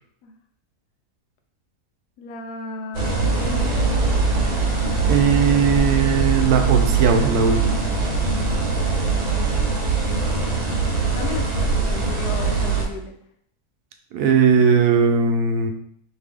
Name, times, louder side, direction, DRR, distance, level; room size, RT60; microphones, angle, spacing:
voice 1, 2.2-3.8 11.1-13.2, left 4 dB, 80° left, 4 dB, 1.2 m, -34 dB
sound 1, 2.9-12.8, right 4 dB, 55° right, 0.4 m, -21 dB
voice 2, 5.1-7.8 14.1-15.7, right 5 dB, 75° right, 5 dB, 1.1 m, -18 dB
4.4 x 2.8 x 3.3 m, 0.67 s
omnidirectional pair, 1.7 m